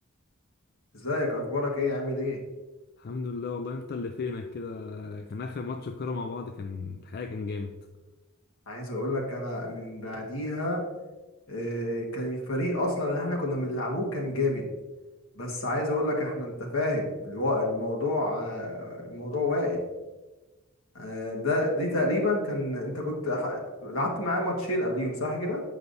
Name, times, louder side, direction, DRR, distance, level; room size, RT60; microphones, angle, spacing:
voice 1, 0.9-2.4 8.7-10.8 11.5-14.7 15.3-19.8 20.9-25.6, left 1 dB, 75° left, -1 dB, 1.5 m, -29 dB
voice 2, 3.0-7.7, left 4 dB, 50° left, 6 dB, 0.3 m, -35 dB
8.3 x 5.6 x 2.6 m, 1.2 s
head